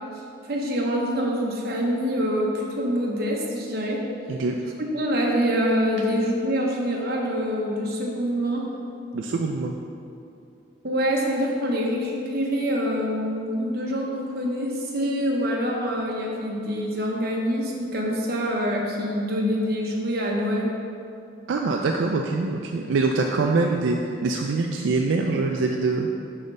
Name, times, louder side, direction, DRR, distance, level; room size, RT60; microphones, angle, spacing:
voice 1, 0.5-4.0 4.9-8.7 10.8-20.7, equal, 55° right, -2 dB, 1.0 m, -25 dB
voice 2, 9.1-9.7 21.5-24.0 24.2-26.1, right 3 dB, 80° right, 2 dB, 0.4 m, -24 dB
7.7 x 3.3 x 5.4 m, 2.6 s
head